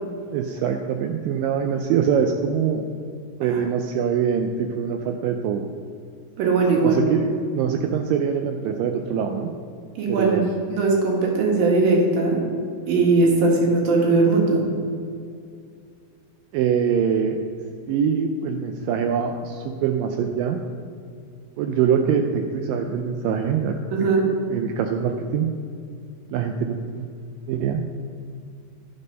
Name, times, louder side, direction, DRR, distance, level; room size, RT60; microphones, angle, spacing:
voice 1, 0.3-2.8 3.4-5.7 6.8-9.5 10.1-10.5 16.5-17.4 17.9-20.6 21.6-24.1 24.5-25.5 26.3-27.1 27.5-28.0, right 7 dB, 85° right, 5 dB, 1.9 m, -24 dB
voice 2, 6.4-7.0 10.0-12.5 12.9-14.7 23.9-24.3, right 3 dB, 70° right, -1 dB, 3.1 m, -19 dB
11.0 x 5.3 x 5.4 m, 2.4 s
omnidirectional pair, 4.5 m